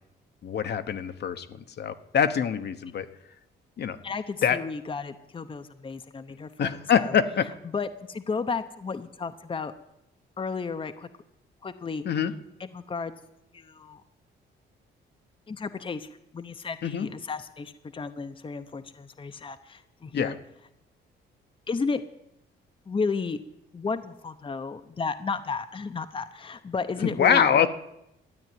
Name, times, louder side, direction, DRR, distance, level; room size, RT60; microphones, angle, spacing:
voice 1, 0.4-3.1 3.8-4.0 4.4-4.6 6.6-7.5 12.0-12.3 16.8-17.1 20.1-20.3 27.2-27.7, left 7 dB, 55° left, 8 dB, 1.1 m, -24 dB
voice 2, 4.0-7.1 7.6-9.7 10.4-11.1 11.6-12.0 12.6-13.1 13.5-14.0 15.5-16.1 16.3-20.4 21.7-22.0 22.9-23.4 23.7-27.7, left 4 dB, 25° left, 8 dB, 0.9 m, -33 dB
13.0 x 9.0 x 9.2 m, 0.83 s
cardioid pair, 90°, 20 cm